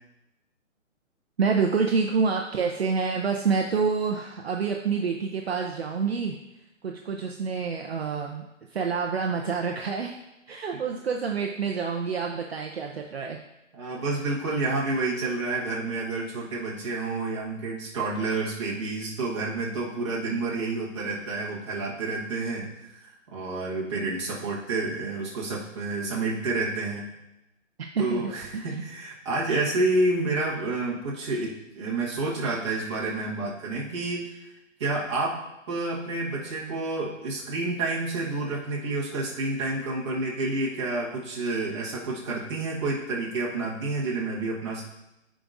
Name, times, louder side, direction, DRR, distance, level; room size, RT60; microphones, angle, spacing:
voice 1, 1.4-6.4 6.8-8.4 8.7-10.2 10.5-13.4 27.9-28.7, right 5 dB, 50° right, 1 dB, 0.7 m, -27 dB
voice 2, 13.7-27.1 28.0-34.3 34.8-35.4 35.7-44.8, right 2 dB, 20° right, -6 dB, 1.5 m, -29 dB
14.5 x 5.1 x 2.6 m, 0.91 s
hypercardioid pair, 175°, 39 cm